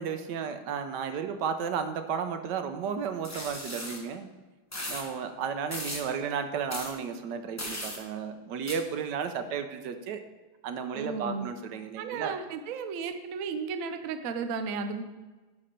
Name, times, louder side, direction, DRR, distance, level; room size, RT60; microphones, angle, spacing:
voice 1, 0.0-4.3 4.9-10.2 10.6-12.3, right 6 dB, 80° right, 8 dB, 1.3 m, -33 dB
sound 1, 3.2-4.0 4.7-5.0 5.7-6.0 6.7-6.9 7.6-8.0 8.7-8.8, left 1 dB, 10° left, 0.9 m, -36 dB
voice 2, 10.9-11.5 12.0-15.0, right 5 dB, 65° right, 8 dB, 0.9 m, -34 dB
10.5 x 4.3 x 5.1 m, 1.2 s
omnidirectional pair, 1.8 m